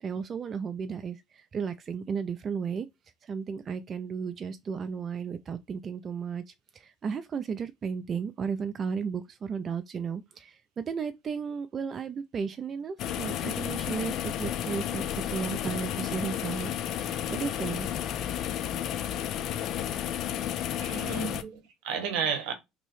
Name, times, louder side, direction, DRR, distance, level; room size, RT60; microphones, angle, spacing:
voice 1, 0.0-2.9 3.2-16.7 17.3-17.9 21.4-21.5, right 6 dB, 40° right, 0.3 m, -34 dB
sound 1, 13.0-21.4, left 10 dB, 60° left, 0.4 m, -32 dB
voice 2, 20.8-22.5, right 6 dB, 75° right, 0.9 m, -32 dB
2.9 x 2.6 x 3.1 m
supercardioid pair, 85°, 0 cm